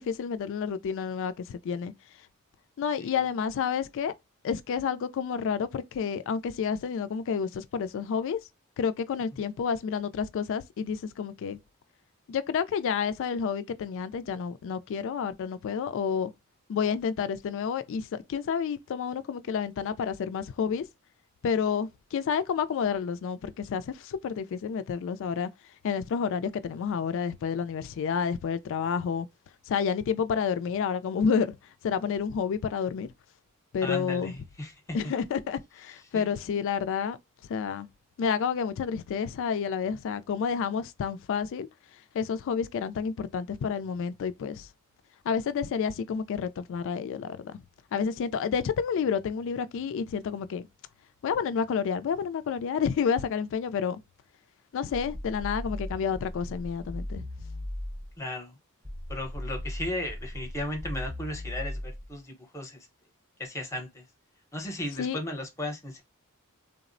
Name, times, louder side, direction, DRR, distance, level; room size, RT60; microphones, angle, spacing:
voice 1, 0.0-1.9 2.8-4.1 4.4-8.4 8.8-11.6 12.3-16.3 16.7-20.8 21.4-25.5 25.8-29.3 29.7-31.6 31.8-33.1 33.7-34.3 34.9-37.2 37.5-37.9 38.2-41.7 42.1-44.7 45.3-47.6 47.9-50.7 51.2-54.0 54.7-57.3 65.0-65.2, left 6 dB, 60° left, 0.3 m, -30 dB
voice 2, 33.8-35.1 36.1-36.3 58.2-58.6 59.1-62.9 63.4-64.0 64.5-66.0, left 1 dB, 15° left, 0.7 m, -36 dB
sound 1, 54.9-58.2 58.8-62.2, left 1 dB, 20° right, 0.7 m, -37 dB
3.4 x 2.0 x 2.5 m
head